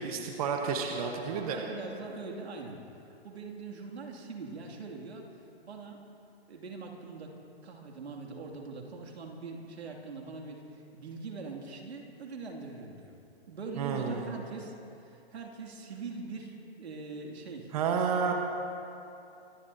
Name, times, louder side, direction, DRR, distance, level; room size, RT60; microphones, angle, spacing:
voice 1, 0.0-1.7 13.8-14.3 17.7-18.3, right 6 dB, 35° right, 2 dB, 1.3 m, -31 dB
voice 2, 1.3-2.8 3.2-5.2 5.6-6.1 6.5-7.3 7.6-13.2 13.5-18.3, right 4 dB, 85° right, 0 dB, 2.7 m, -42 dB
25.0 x 15.5 x 2.8 m, 2.7 s
hypercardioid pair, 165°, 32 cm